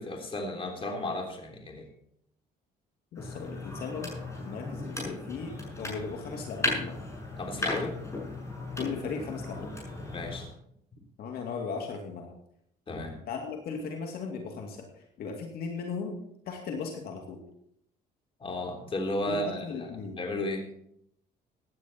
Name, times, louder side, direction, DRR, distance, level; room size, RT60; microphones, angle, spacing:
voice 1, 0.0-1.9 7.4-8.0 10.1-10.5 12.9-13.2 18.4-19.9 20.1-20.7, left 1 dB, 30° left, 2 dB, 3.5 m, -34 dB
voice 2, 3.1-4.1 4.4-7.0 8.7-9.7 11.2-12.3 13.3-16.2 16.5-17.4 19.3-20.3, left 5 dB, 65° left, 2 dB, 2.5 m, -37 dB
sound 1, 3.2-10.5, left 2 dB, 15° left, 6.4 m, -36 dB
16.5 x 9.6 x 4.3 m, 0.71 s
cardioid pair, 110°, 17 cm